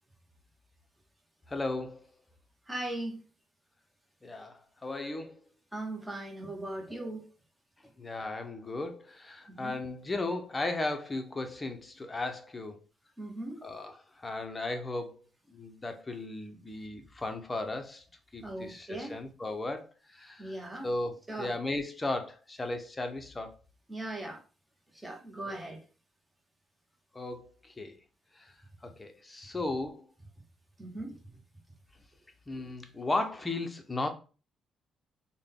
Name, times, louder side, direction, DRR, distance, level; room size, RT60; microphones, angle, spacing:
voice 1, 1.5-2.1 4.2-5.4 8.0-12.8 13.6-15.2 15.5-18.0 18.3-20.6 20.8-23.6 25.5-25.6 27.1-28.0 28.4-28.5 28.8-30.1 32.5-34.1, left 2 dB, 20° left, 0.7 m, -36 dB
voice 2, 2.7-3.2 5.7-7.3 9.5-9.8 13.2-13.6 18.4-19.1 20.4-20.9 21.3-21.5 23.9-24.4 24.9-25.9 30.8-31.2, right 1 dB, 10° right, 1.0 m, -39 dB
3.6 x 2.2 x 3.5 m
cardioid pair, 90°, 0 cm